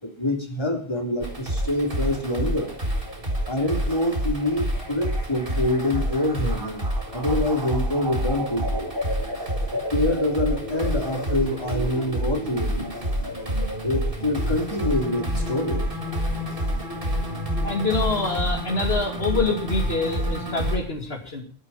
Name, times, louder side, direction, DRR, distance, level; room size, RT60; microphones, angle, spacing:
voice 1, 0.0-2.7 3.5-6.8 7.1-8.9 9.9-12.9 13.8-15.9, left 1 dB, 25° left, 4 dB, 3.2 m, -26 dB
sound 1, 1.2-20.8, equal, 60° right, 4.8 m, -28 dB
voice 2, 17.6-21.4, left 3 dB, 70° left, 3 dB, 2.8 m, -26 dB
24.5 x 8.9 x 5.6 m, 0.41 s
omnidirectional pair, 1.1 m